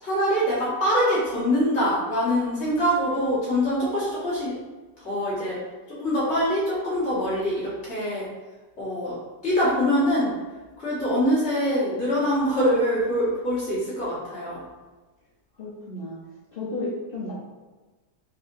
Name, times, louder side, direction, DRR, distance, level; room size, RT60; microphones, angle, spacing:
voice 1, 0.0-4.5 5.0-5.6 6.0-8.3 8.8-9.2 9.4-10.3 10.8-14.6, equal, 40° left, -9 dB, 1.6 m, -24 dB
voice 2, 15.6-16.2 16.5-17.3, left 2 dB, 60° left, -7 dB, 0.6 m, -32 dB
4.1 x 2.8 x 2.6 m, 1.3 s
omnidirectional pair, 1.9 m